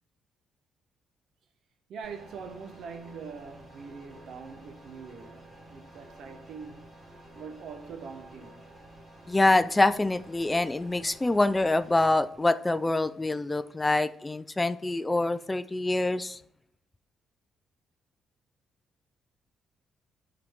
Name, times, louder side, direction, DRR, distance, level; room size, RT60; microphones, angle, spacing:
voice 1, 1.9-6.9 7.3-8.7, right 5 dB, 70° right, 0.8 m, -43 dB
sound 1, 2.0-12.0, right 1 dB, 30° right, 3.1 m, -51 dB
voice 2, 9.3-16.4, left 2 dB, 15° left, 0.3 m, -25 dB
11.5 x 3.9 x 3.5 m
cardioid pair, 90°, 0 cm